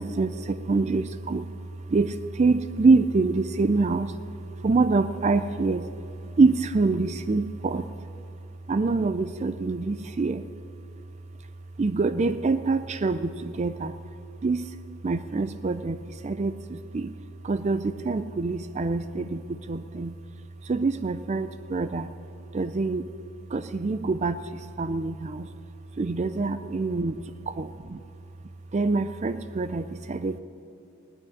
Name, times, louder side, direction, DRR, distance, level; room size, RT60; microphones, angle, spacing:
voice 1, 0.0-1.5 1.9-4.2 4.6-5.9 6.4-7.9 8.7-10.4 11.8-13.9 14.4-14.8 15.0-17.1 17.4-20.2 20.6-22.1 22.5-23.1 23.5-25.5 26.0-28.0 28.7-30.4, right 3 dB, 30° right, 11 dB, 0.4 m, -25 dB
19.0 x 6.4 x 9.8 m, 2.8 s
head